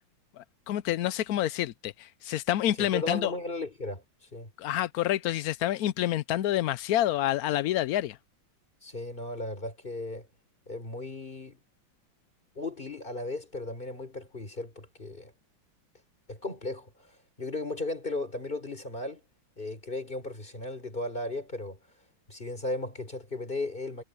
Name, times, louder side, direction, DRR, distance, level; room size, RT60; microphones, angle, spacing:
voice 1, 0.4-3.3 4.6-8.2, left 13 dB, 75° left, 0.8 m, -28 dB
voice 2, 2.8-4.5 8.8-10.3 10.7-11.6 12.5-15.3 16.3-19.2 19.6-21.8 22.3-24.0, left 2 dB, 25° left, 4.1 m, -36 dB
omnidirectional pair, 2.1 m